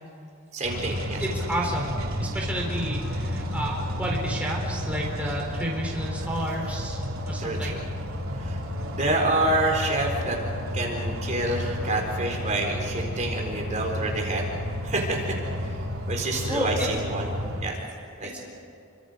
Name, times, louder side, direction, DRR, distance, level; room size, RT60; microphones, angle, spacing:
voice 1, 0.5-1.2 6.2-6.3 7.4-7.8 8.4-8.6 8.9-10.4 10.7-14.5 14.8-15.2 16.1-17.3 17.6-17.8 18.2-18.4, right 2 dB, 35° right, 0 dB, 4.2 m, -27 dB
sound 1, 0.6-17.7, equal, 85° right, 2.8 m, -31 dB
voice 2, 1.2-1.9 2.2-7.0 7.3-7.8 16.5-16.9 18.3-18.4, equal, 5° right, -3 dB, 4.1 m, -31 dB
29.5 x 25.5 x 5.2 m, 2.6 s
head